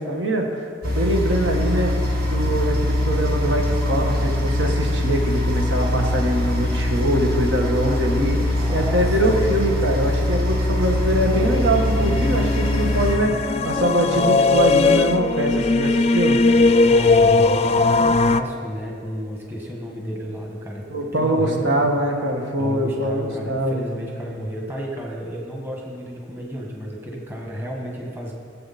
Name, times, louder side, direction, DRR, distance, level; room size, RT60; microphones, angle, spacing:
voice 1, 0.0-1.9 2.3-16.4 20.9-23.9, right 1 dB, 80° right, 1 dB, 1.7 m, -23 dB
sound 1, 0.8-13.2, left 1 dB, 50° right, 2.3 m, -22 dB
voice 2, 8.5-9.6 16.9-20.9 21.1-21.9 22.6-28.3, equal, 10° right, -2 dB, 1.6 m, -32 dB
sound 2, 11.1-18.4, left 3 dB, 30° left, 0.3 m, -19 dB
19.0 x 7.8 x 4.3 m, 2.4 s
head